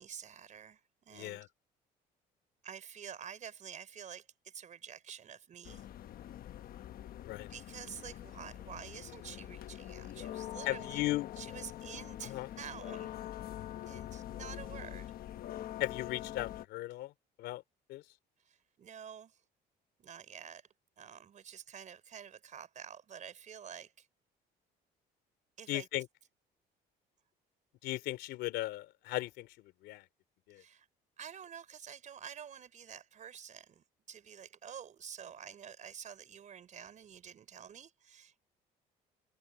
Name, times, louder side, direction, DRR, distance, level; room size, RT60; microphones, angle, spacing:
voice 1, 0.0-1.5 2.6-5.9 7.5-11.0 11.4-13.1 13.8-15.1 18.4-19.4 20.0-20.7 21.0-24.1 25.6-25.9 30.5-30.9 31.2-38.4, right 8 dB, 45° right, 4.4 m, -49 dB
voice 2, 1.1-1.5 7.2-7.5 10.6-11.4 12.2-12.5 15.8-17.1 17.4-17.6 17.9-18.0 25.7-26.1 27.8-30.0 30.5-30.6, left 17 dB, 85° left, 3.2 m, -37 dB
sound 1, 5.6-16.7, left 12 dB, 60° left, 1.2 m, -44 dB
cardioid pair, 110°, 17 cm